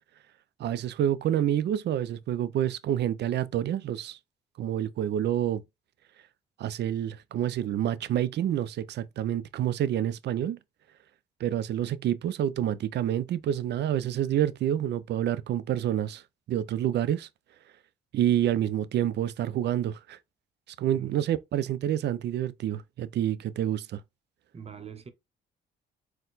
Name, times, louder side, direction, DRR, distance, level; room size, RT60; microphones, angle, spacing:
voice 1, 0.6-4.2 4.6-5.6 6.6-10.6 11.4-16.2 16.5-17.3 18.1-20.2 20.8-24.0, right 11 dB, 60° right, 0.4 m, -28 dB
voice 2, 20.9-21.2 24.5-25.1, right 7 dB, 30° right, 0.8 m, -44 dB
4.3 x 2.2 x 3.9 m
cardioid pair, 90°, 20 cm